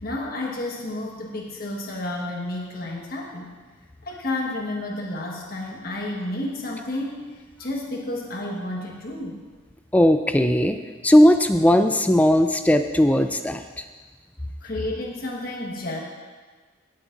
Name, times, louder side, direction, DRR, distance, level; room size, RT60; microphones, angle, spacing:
voice 1, 0.0-3.5 4.0-7.2 7.6-9.4 12.3-12.4 14.6-16.0, left 1 dB, 50° left, -2 dB, 1.3 m, -31 dB
voice 2, 9.9-10.8 11.0-13.6, left 1 dB, 10° left, 8 dB, 0.3 m, -17 dB
17.0 x 8.9 x 2.5 m, 1.4 s
head